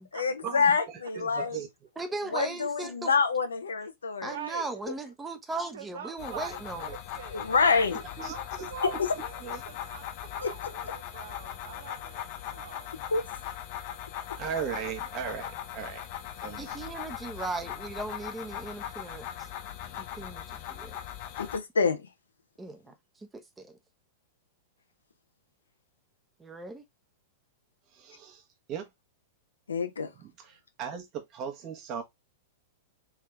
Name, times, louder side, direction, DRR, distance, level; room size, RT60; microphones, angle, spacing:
voice 1, 0.1-1.6 2.3-4.3 7.3-8.0 8.8-9.1 10.4-10.7 13.1-13.2 21.4-22.0 29.7-30.1, left 5 dB, 75° left, 0.8 m, -27 dB
voice 2, 1.1-1.7 8.2-9.0 9.4-9.6 14.4-16.1 16.4-16.8 27.9-28.4 28.7-28.9 30.2-32.0, right 7 dB, 35° right, 1.2 m, -37 dB
voice 3, 2.0-3.1 4.2-7.0 16.6-19.5 20.1-21.0 22.6-23.8 26.4-26.8, right 3 dB, 15° right, 0.8 m, -38 dB
voice 4, 4.3-4.7 5.7-8.4 8.7-13.0 14.3-15.0, right 8 dB, 60° right, 0.8 m, -45 dB
sound 1, 6.2-21.6, left 11 dB, 45° left, 0.8 m, -39 dB
3.6 x 3.3 x 3.1 m
figure-of-eight pair, 100°, 0 cm